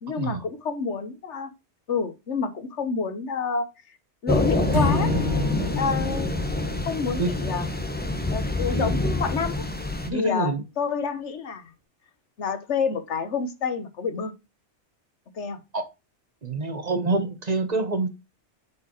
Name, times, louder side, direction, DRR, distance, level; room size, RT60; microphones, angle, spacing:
voice 1, 0.0-1.5 1.9-4.0 4.2-5.1 5.8-6.3 6.7-7.7 8.3-9.6 10.1-11.7 12.4-14.3 15.3-15.6, left 5 dB, 80° left, 1.4 m, -28 dB
Thunder / Rain, 4.3-10.1, left 2 dB, 10° left, 1.0 m, -26 dB
Acoustic guitar / Strum, 4.7-8.0, left 2 dB, 70° right, 2.2 m, -30 dB
voice 2, 10.0-10.6 15.7-15.9 16.4-18.1, right 3 dB, 40° right, 1.0 m, -26 dB
8.2 x 4.8 x 2.9 m
omnidirectional pair, 1.2 m